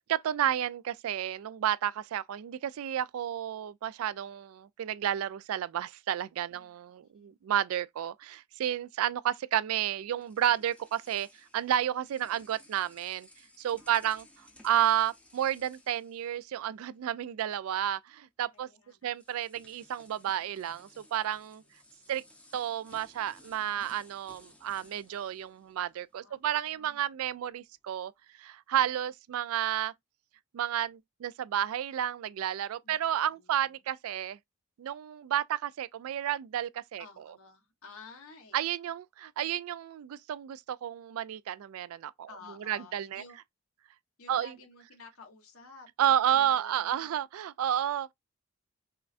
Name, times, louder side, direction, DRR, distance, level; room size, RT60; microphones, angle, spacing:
voice 1, 0.0-11.3 11.5-13.3 13.6-14.3 14.6-18.7 19.0-21.6 22.1-22.2 22.5-28.1 28.4-29.9 30.5-34.4 34.8-37.0 38.5-42.3 42.7-43.2 44.3-44.5 46.0-48.1, right 10 dB, 75° right, 0.3 m, -31 dB
voice 2, 6.5-7.3 13.8-14.2 18.5-19.2 21.6-22.4 26.2-27.0 32.8-33.8 37.0-38.6 42.3-43.4 44.2-47.2, left 4 dB, 70° left, 1.2 m, -53 dB
sound 1, 9.7-17.0 17.2-17.5 18.6-18.7 19.1-26.3, left 1 dB, 5° left, 0.7 m, -59 dB
5.5 x 2.2 x 2.5 m
head